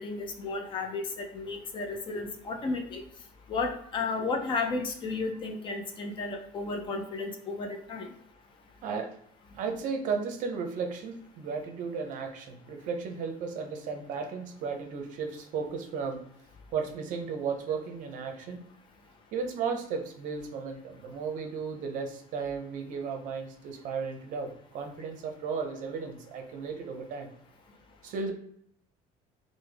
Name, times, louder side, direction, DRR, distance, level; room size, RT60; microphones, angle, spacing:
voice 1, 0.0-3.0 3.5-8.1, left 3 dB, 30° left, 3 dB, 0.4 m, -33 dB
voice 2, 9.5-16.2 16.7-18.6 19.3-27.3 28.0-28.3, right 5 dB, 55° right, 4 dB, 0.6 m, -34 dB
3.3 x 2.1 x 3.3 m, 0.68 s
cardioid pair, 165°, 16 cm